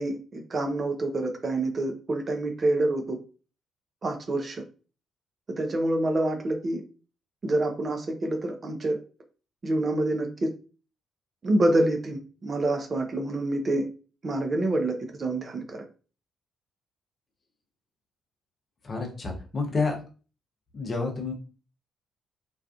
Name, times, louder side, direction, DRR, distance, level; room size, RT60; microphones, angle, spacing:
voice 1, 0.0-3.2 4.0-4.6 5.6-6.8 7.4-9.0 9.6-10.5 11.4-13.9 14.2-15.8, right 2 dB, 40° right, 4 dB, 0.5 m, -27 dB
voice 2, 18.8-20.0 20.7-21.3, left 3 dB, 45° left, 2 dB, 0.7 m, -29 dB
2.4 x 2.3 x 2.3 m, 0.36 s
hypercardioid pair, 45°, 0 cm